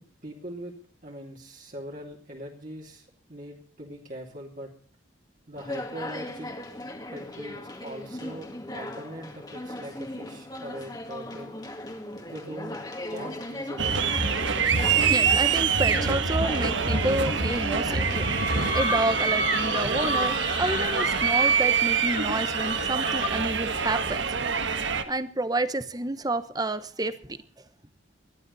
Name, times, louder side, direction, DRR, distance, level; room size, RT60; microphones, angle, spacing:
voice 1, 0.2-0.7 1.0-4.7 5.5-6.5 7.1-11.6 12.3-14.4, right 1 dB, 40° right, -2 dB, 3.0 m, -41 dB
Conversation, 5.5-20.8, left 1 dB, 20° left, 2.1 m, -38 dB
sound 1, 13.8-25.0, right 6 dB, 65° right, 1.4 m, -25 dB
voice 2, 15.0-18.3 18.7-24.7 25.1-27.4, right 2 dB, 20° right, 12 dB, 0.9 m, -29 dB
sound 2, 17.9-23.6, left 1 dB, 40° left, 2.5 m, -32 dB
21.0 x 13.0 x 4.1 m, 0.42 s
head